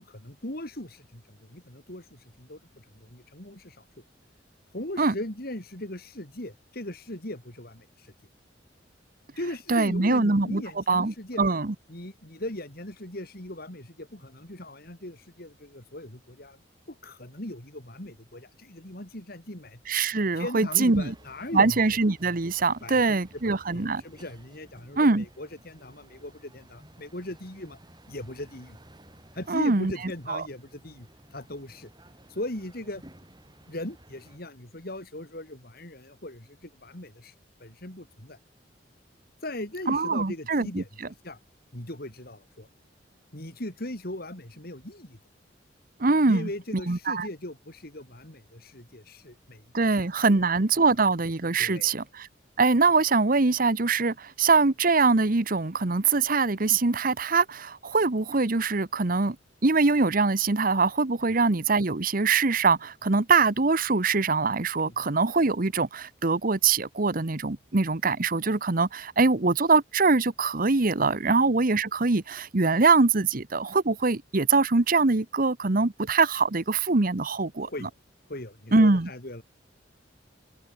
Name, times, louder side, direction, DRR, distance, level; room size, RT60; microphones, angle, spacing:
voice 1, 0.0-4.0 4.7-8.1 9.4-11.4 11.9-16.6 16.9-19.8 20.3-21.9 22.8-27.8 28.1-28.8 29.3-31.9 32.3-33.0 33.7-37.3 37.6-38.4 39.4-41.4 41.7-42.7 43.3-45.2 46.3-50.0 50.3-50.4 51.6-52.0 64.8-64.9 71.3-71.4 77.6-77.9 78.3-79.4, left 1 dB, 55° left, 4.8 m, -39 dB
voice 2, 9.7-10.6 10.9-11.7 19.9-21.1 21.5-24.0 25.0-25.2 29.5-29.9 30.3-30.4 39.9-40.8 46.0-46.5 46.9-47.3 49.7-52.3 52.6-59.4 59.6-77.7 78.7-79.1, right 3 dB, 50° right, 1.1 m, -23 dB
sound 1, 20.9-34.4, right 1 dB, 25° right, 7.7 m, -54 dB
open air
head